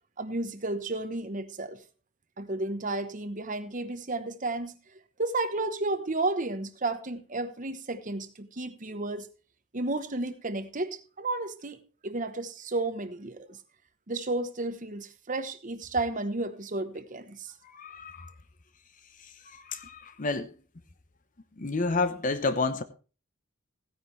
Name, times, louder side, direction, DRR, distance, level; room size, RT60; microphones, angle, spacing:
voice 1, 0.2-1.8 2.4-4.8 5.2-9.3 9.7-13.6 14.1-17.5, right 2 dB, 40° right, 1.0 m, -32 dB
voice 2, 17.6-18.3 19.5-20.5 21.6-22.8, left 3 dB, 40° left, 0.9 m, -30 dB
16.0 x 10.0 x 3.3 m
head